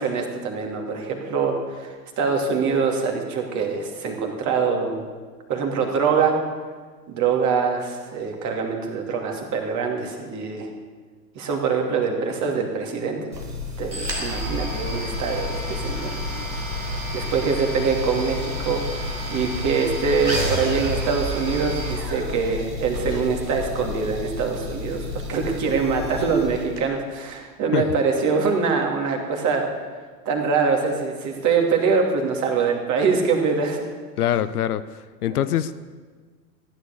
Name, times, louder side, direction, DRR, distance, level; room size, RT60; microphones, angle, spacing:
voice 1, 0.0-5.1 5.5-6.4 7.1-10.7 11.3-13.2 13.8-16.5 17.1-29.6 30.2-33.8 35.3-35.6, right 5 dB, 35° right, 2 dB, 2.7 m, -24 dB
sound 1, 13.3-26.8, left 1 dB, 90° right, 2.4 m, -30 dB
voice 2, 34.2-35.9, left 11 dB, 60° left, 14 dB, 0.7 m, -24 dB
15.0 x 10.0 x 6.7 m, 1.5 s
figure-of-eight pair, 90°, 50 cm